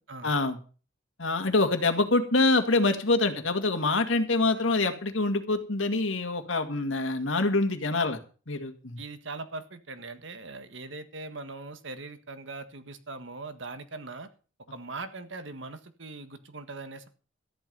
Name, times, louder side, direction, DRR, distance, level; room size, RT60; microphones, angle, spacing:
voice 1, 0.2-0.6 1.2-8.2 8.5-9.0, left 2 dB, 75° left, 6 dB, 2.1 m, -25 dB
voice 2, 9.0-14.3 14.7-17.1, right 3 dB, 70° right, 9 dB, 1.6 m, -40 dB
13.5 x 11.0 x 5.4 m, 0.38 s
head